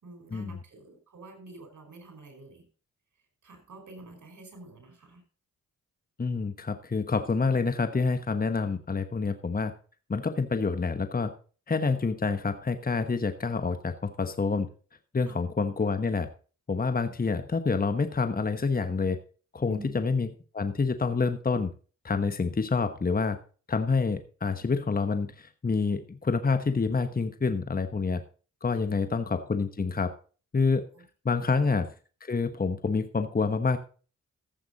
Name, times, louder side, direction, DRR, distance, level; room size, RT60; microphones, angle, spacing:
voice 1, 0.0-2.6 3.4-5.2 15.2-15.4 19.7-19.9 28.9-29.1 30.9-31.0 31.5-31.7, right 3 dB, 65° right, 5 dB, 5.2 m, -48 dB
voice 2, 6.2-9.7 10.1-11.3 11.7-14.7 15.1-16.3 16.7-19.2 19.5-20.3 20.5-21.7 22.0-23.4 23.7-28.2 28.6-30.1 30.5-30.9 31.2-31.9 32.2-33.8, left 4 dB, 30° left, 9 dB, 1.1 m, -27 dB
14.0 x 8.0 x 4.0 m, 0.38 s
cardioid pair, 55°, 32 cm